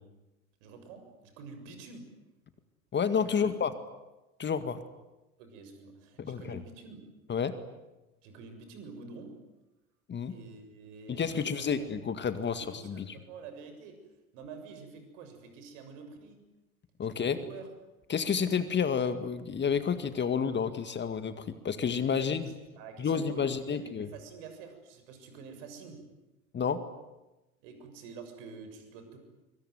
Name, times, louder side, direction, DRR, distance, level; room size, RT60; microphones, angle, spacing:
voice 1, 0.6-2.1 3.4-3.5 5.4-7.0 8.2-9.3 10.3-11.9 12.6-14.0 14.3-16.4 17.0-17.7 22.1-26.0 27.6-29.2, right 5 dB, 60° right, 7 dB, 7.1 m, -48 dB
voice 2, 2.9-3.7 4.4-4.8 6.2-6.6 7.3-7.5 10.1-10.3 11.1-13.2 17.0-17.4 18.1-22.4 23.0-24.1 26.5-26.8, left 6 dB, 25° left, 11 dB, 2.0 m, -30 dB
25.0 x 24.5 x 9.5 m, 1.0 s
figure-of-eight pair, 75°, 41 cm